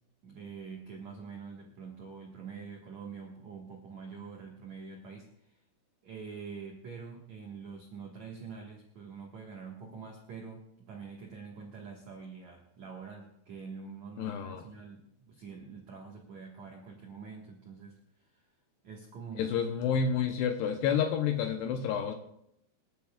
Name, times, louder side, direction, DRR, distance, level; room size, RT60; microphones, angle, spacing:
voice 1, 0.2-5.6 6.0-18.0 18.2-18.5 18.8-19.5, right 5 dB, 65° right, -1 dB, 1.9 m, -45 dB
voice 2, 14.2-14.6 19.4-22.1, left 7 dB, 80° left, 6 dB, 2.5 m, -29 dB
27.5 x 10.5 x 2.4 m, 0.76 s
omnidirectional pair, 5.6 m